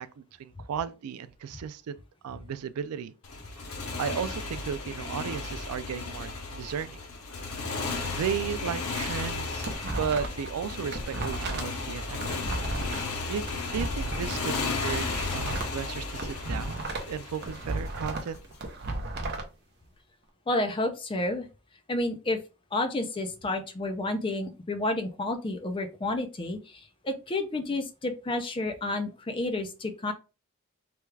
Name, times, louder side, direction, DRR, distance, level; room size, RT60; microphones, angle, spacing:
voice 1, 0.0-2.0 2.2-3.1 4.0-7.0 8.0-9.7 10.0-12.4 13.2-18.4, right 7 dB, 85° right, 0.3 m, -35 dB
Motorcycle, 3.2-18.4, left 3 dB, 85° left, 0.7 m, -34 dB
sound 1, 9.6-10.5 10.8-14.4 14.8-17.1 17.4-19.4, right 2 dB, 50° right, 0.7 m, -34 dB
voice 2, 20.5-21.5 21.9-22.4 22.7-30.1, left 2 dB, 25° left, 0.4 m, -30 dB
3.4 x 2.3 x 3.2 m
head